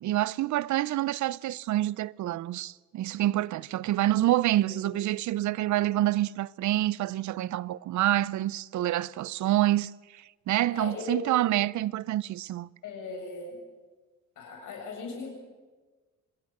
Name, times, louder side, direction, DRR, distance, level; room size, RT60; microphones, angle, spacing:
voice 1, 0.0-12.7, right 14 dB, 70° right, 0.6 m, -27 dB
voice 2, 10.7-11.4 12.8-13.6 14.4-15.3, left 3 dB, 80° left, 7.6 m, -38 dB
26.5 x 20.5 x 6.7 m
cardioid pair, 90°, 30 cm